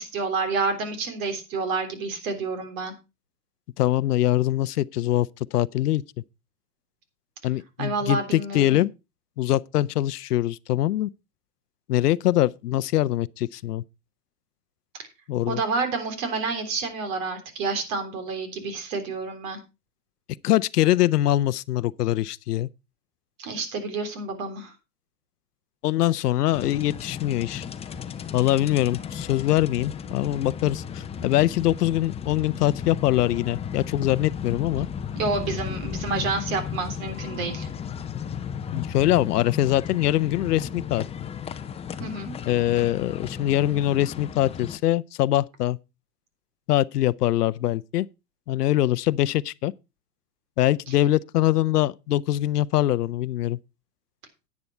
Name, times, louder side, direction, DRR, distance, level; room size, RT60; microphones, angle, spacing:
voice 1, 0.0-2.9 7.8-8.8 15.5-19.6 23.4-24.7 35.2-37.7 42.0-42.3, right 4 dB, 60° right, 3.6 m, -29 dB
voice 2, 3.8-6.0 7.4-8.9 9.4-11.1 11.9-13.8 15.3-15.6 20.4-22.7 25.8-27.6 28.3-34.9 38.7-41.0 42.5-45.8 46.7-48.1 48.5-49.7 50.6-53.6, left 14 dB, 80° left, 0.6 m, -23 dB
sound 1, 26.5-44.8, left 7 dB, 15° left, 0.6 m, -35 dB
9.7 x 9.5 x 4.3 m
hypercardioid pair, 115°, 46 cm